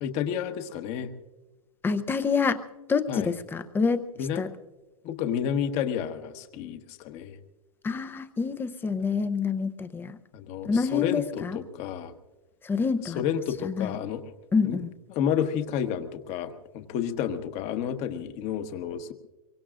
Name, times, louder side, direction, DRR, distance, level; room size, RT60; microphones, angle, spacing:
voice 1, 0.0-1.1 3.1-3.3 4.2-4.4 5.0-7.4 10.3-12.1 13.0-14.2 14.6-14.8 15.1-19.1, left 8 dB, 35° left, 8 dB, 1.3 m, -30 dB
voice 2, 1.8-2.6 2.9-4.1 4.4-4.5 7.8-10.2 10.6-11.6 12.6-13.2 13.6-13.9 14.5-14.9, left 5 dB, 10° left, 11 dB, 0.7 m, -27 dB
24.5 x 23.5 x 2.5 m, 1.1 s
hypercardioid pair, 140°, 19 cm